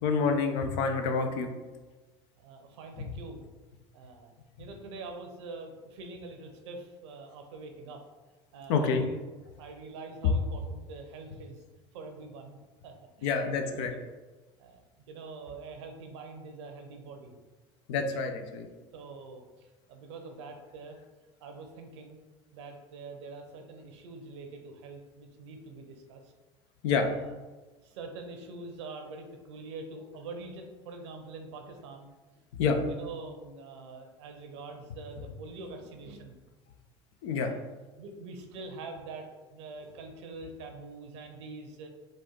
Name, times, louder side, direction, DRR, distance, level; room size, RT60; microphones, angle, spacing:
voice 1, 0.0-1.5 3.0-3.1 8.7-9.1 10.2-10.3 13.2-13.9 17.9-18.7 26.8-27.1 32.5-32.8 37.2-37.5, left 5 dB, 65° left, 5 dB, 0.6 m, -27 dB
voice 2, 2.4-3.4 3.9-4.3 4.6-8.0 8.5-9.2 9.4-11.6 11.9-12.6 12.8-14.0 14.6-17.3 18.9-21.0 21.4-22.2 22.5-26.3 26.9-27.4 27.8-32.1 32.8-36.4 37.4-37.7 38.0-41.9, right 3 dB, 75° right, 4 dB, 0.7 m, -45 dB
4.2 x 2.5 x 3.7 m, 1.2 s
hypercardioid pair, 75°, 15 cm